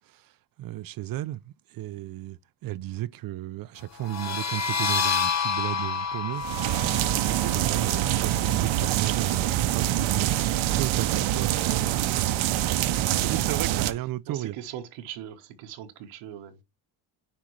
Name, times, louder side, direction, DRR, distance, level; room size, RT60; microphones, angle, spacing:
voice 1, 0.6-6.7 7.1-10.4 10.6-11.7 13.0-14.6, right 15 dB, 45° right, 0.4 m, -33 dB
sound 1, 4.0-9.4, left 6 dB, 30° left, 1.1 m, -30 dB
sound 2, 6.4-13.9, right 13 dB, 65° right, 0.8 m, -25 dB
voice 2, 12.8-13.3 13.9-16.6, right 10 dB, 85° right, 1.2 m, -41 dB
9.9 x 3.6 x 3.1 m
cardioid pair, 100°, 50 cm